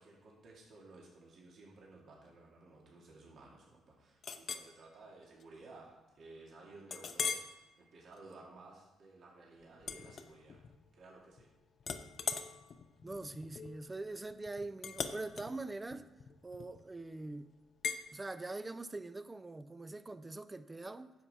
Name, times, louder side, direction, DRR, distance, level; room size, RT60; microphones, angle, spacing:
voice 1, 0.0-10.6 10.9-11.5, right 3 dB, 65° right, 2.3 m, -56 dB
Chink clink, 4.2-4.7 5.2-5.4 5.9-6.0 6.9-7.5 8.1-8.3 9.8-10.8 11.1-11.5 11.8-16.9 17.8-18.0, left 6 dB, 50° left, 0.7 m, -41 dB
voice 2, 13.0-16.1 16.4-17.5 18.1-21.1, right 2 dB, 20° right, 0.5 m, -43 dB
10.0 x 7.0 x 4.3 m
cardioid pair, 90°, 0 cm